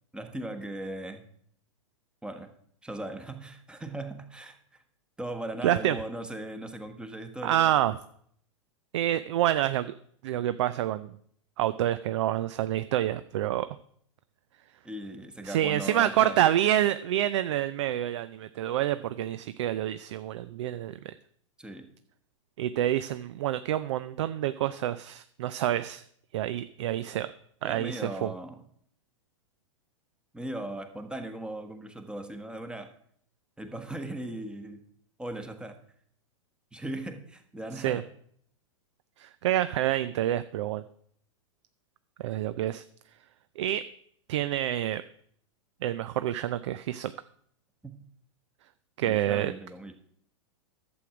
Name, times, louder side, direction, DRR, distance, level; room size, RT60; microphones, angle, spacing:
voice 1, 0.1-1.3 2.2-2.5 2.8-4.8 5.2-7.7 14.8-16.4 21.6-21.9 27.6-28.6 30.3-32.9 33.6-34.8 35.2-35.8 36.7-38.0 47.8-48.0 49.0-49.9, right 1 dB, 5° right, 7 dB, 1.2 m, -38 dB
voice 2, 5.6-6.0 7.4-8.0 8.9-9.9 10.2-11.1 11.6-13.7 15.4-21.1 22.6-26.0 26.3-27.3 27.6-28.3 37.8-38.0 39.2-40.8 42.2-42.8 43.6-43.8 44.3-45.0 45.8-47.1 49.0-49.5, right 12 dB, 60° right, 13 dB, 0.5 m, -27 dB
11.5 x 7.9 x 4.9 m, 0.64 s
hypercardioid pair, 105°, 17 cm